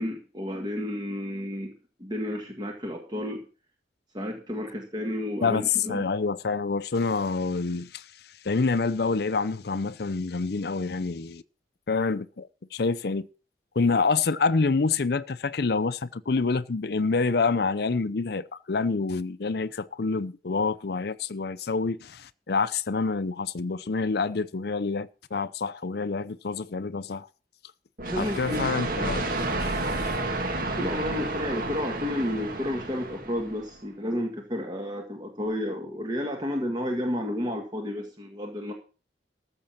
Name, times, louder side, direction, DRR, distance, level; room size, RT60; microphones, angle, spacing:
voice 1, 0.0-1.7 2.0-3.4 4.1-6.0 28.0-28.6 30.8-38.7, left 1 dB, 25° right, 1.8 m, -31 dB
voice 2, 5.9-8.1 8.4-11.4 11.9-13.3 13.8-27.3 28.2-29.3 29.6-30.1, left 4 dB, 60° left, 0.6 m, -27 dB
sound 1, 28.0-33.7, right 2 dB, 50° right, 1.9 m, -31 dB
14.0 x 6.7 x 5.9 m
head